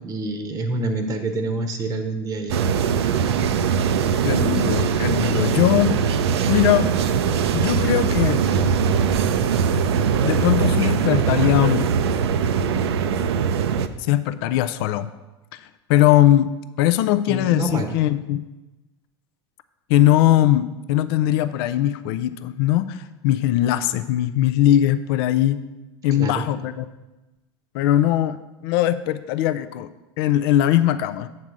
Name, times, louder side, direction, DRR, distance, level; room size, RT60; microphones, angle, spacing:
voice 1, 0.0-2.6 17.3-17.9 26.1-26.4, right 2 dB, 25° right, 6 dB, 0.8 m, -27 dB
sound 1, 2.5-13.9, right 7 dB, 80° right, 0.4 m, -21 dB
voice 2, 4.2-6.0 6.5-6.9 7.5-8.4 10.2-11.9 14.1-15.1 15.5-15.6 15.9-18.5 19.9-25.6 26.0-26.9 27.7-28.4 28.6-29.9 30.2-31.3, left 13 dB, 65° left, 12 dB, 0.4 m, -20 dB
7.5 x 3.9 x 6.0 m, 1.1 s
hypercardioid pair, 95°, 13 cm